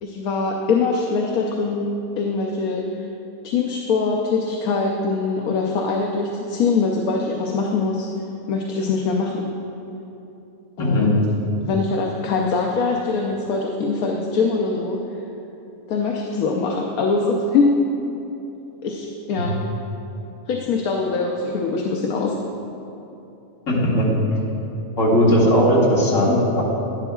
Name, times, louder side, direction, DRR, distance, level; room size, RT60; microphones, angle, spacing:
voice 1, 0.0-3.1 3.4-8.1 8.5-9.5 10.8-11.1 11.7-15.2 15.9-17.7 18.8-19.6 20.5-22.4, left 4 dB, 75° left, 0 dB, 1.1 m, -23 dB
voice 2, 10.8-11.1 19.4-19.5 23.7-24.4 25.0-26.6, equal, 60° left, -6 dB, 2.2 m, -18 dB
11.0 x 10.5 x 2.3 m, 3.0 s
omnidirectional pair, 1.6 m